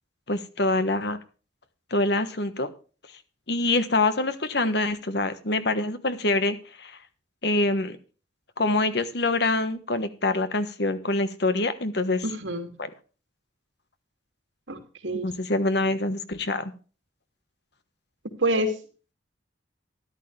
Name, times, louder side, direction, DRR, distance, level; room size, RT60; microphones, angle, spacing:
voice 1, 0.3-1.2 1.9-2.7 3.5-7.0 7.4-8.0 8.6-12.2 12.8-12.9 15.1-16.7, left 2 dB, 60° left, 11 dB, 1.4 m, -25 dB
voice 2, 12.2-12.7 14.7-15.3 18.4-18.7, right 1 dB, 90° right, 5 dB, 2.7 m, -27 dB
13.0 x 11.5 x 3.4 m, 0.36 s
head